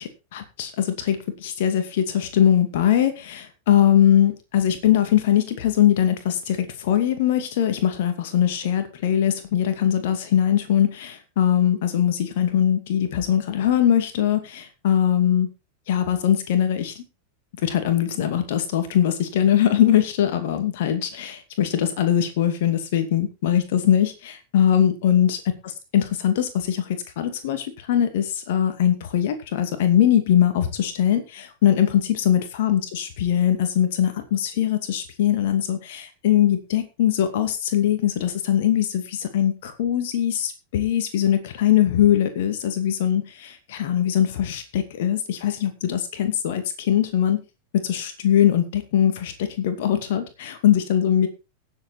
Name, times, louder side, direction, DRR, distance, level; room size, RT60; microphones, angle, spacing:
voice 1, 0.0-15.5 15.9-17.0 17.6-25.4 25.9-47.4 47.8-51.3, left 10 dB, 55° left, 9 dB, 2.5 m, -21 dB
17.0 x 8.0 x 4.3 m, 0.28 s
figure-of-eight pair, 90°, 0 cm